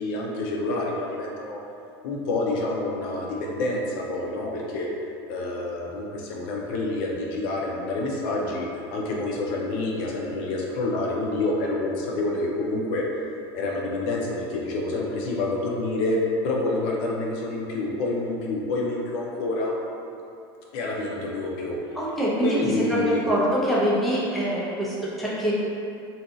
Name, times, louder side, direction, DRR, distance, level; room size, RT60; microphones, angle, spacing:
voice 1, 0.0-1.6 2.0-4.9 5.3-13.2 13.5-16.2 16.4-19.7 20.7-21.8 22.4-23.3, left 2 dB, 65° left, -2 dB, 0.5 m, -28 dB
voice 2, 22.0-22.6 22.9-25.5, right 1 dB, ahead, -8 dB, 0.7 m, -24 dB
2.7 x 2.3 x 3.7 m, 2.7 s
supercardioid pair, 125°, 13 cm